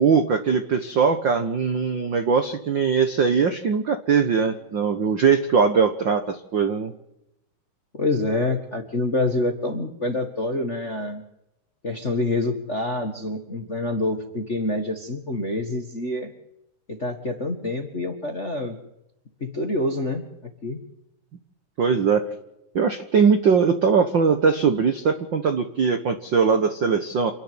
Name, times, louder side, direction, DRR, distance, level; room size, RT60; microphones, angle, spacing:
voice 1, 0.0-6.9 21.8-22.3 22.7-27.3, right 6 dB, 70° right, 8 dB, 1.0 m, -21 dB
voice 2, 7.9-11.2 11.8-16.3 16.9-18.8 19.4-20.3 20.6-20.8, left 2 dB, 30° left, 5 dB, 1.3 m, -26 dB
28.5 x 10.5 x 9.6 m, 0.84 s
omnidirectional pair, 4.0 m